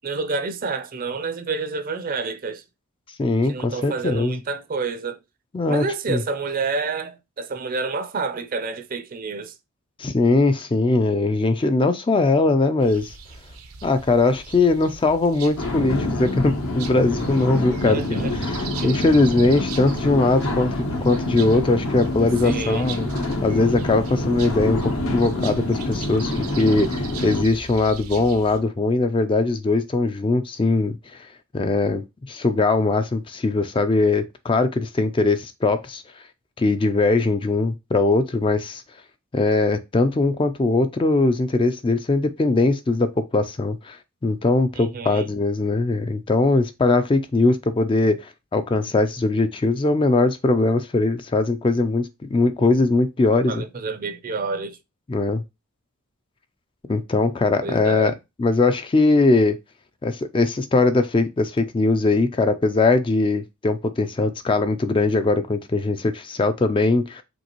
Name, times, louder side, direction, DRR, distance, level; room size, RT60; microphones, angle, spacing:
voice 1, 0.0-2.6 3.4-5.2 5.7-9.5 17.9-18.3 18.8-19.0 22.4-22.9 44.8-45.3 53.5-54.8 57.6-58.2, right 4 dB, 40° right, 0.5 m, -29 dB
voice 2, 3.2-4.4 5.5-6.2 10.0-13.1 13.8-23.1 23.4-31.0 31.5-36.0 36.6-38.8 39.3-44.0 44.2-53.6 55.1-55.4 56.9-58.1 58.4-59.6 60.0-67.2, left 3 dB, 25° left, 0.3 m, -21 dB
sound 1, 12.8-28.6, right 5 dB, 80° right, 0.7 m, -40 dB
sound 2, 15.6-27.4, left 1 dB, 70° left, 0.9 m, -27 dB
5.3 x 3.2 x 2.9 m
head